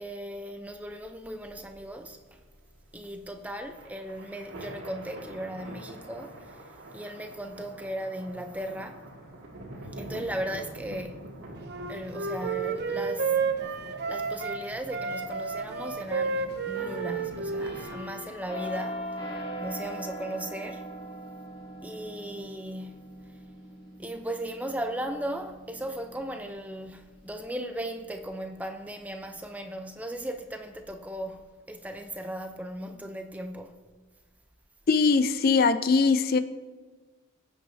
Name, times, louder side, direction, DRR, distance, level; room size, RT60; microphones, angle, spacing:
voice 1, 0.0-2.2 2.9-6.6 6.9-9.0 9.9-11.3 11.9-13.4 14.1-20.9 21.8-22.9 24.0-33.8, right 1 dB, 5° right, 0.6 m, -37 dB
sound 1, 1.2-18.0, right 1 dB, 80° right, 2.1 m, -45 dB
Wind instrument woodwind instrument, 11.7-14.6 14.9-18.3, right 5 dB, 50° right, 0.9 m, -31 dB
sound 2, 16.7-28.3 28.7-29.0, equal, 25° left, 2.5 m, -41 dB
voice 2, 34.9-36.4, left 4 dB, 45° left, 0.4 m, -21 dB
22.5 x 8.5 x 2.7 m
head